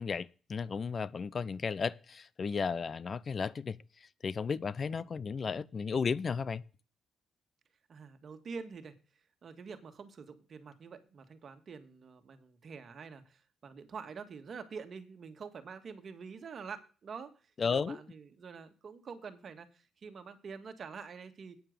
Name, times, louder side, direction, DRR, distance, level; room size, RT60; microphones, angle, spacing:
voice 1, 0.0-3.8 4.2-6.6 17.6-18.0, left 5 dB, 50° left, 0.5 m, -34 dB
voice 2, 7.9-8.9 9.4-17.3 17.6-21.6, right 5 dB, 55° right, 1.7 m, -46 dB
9.4 x 7.3 x 6.7 m
supercardioid pair, 65°, 0 cm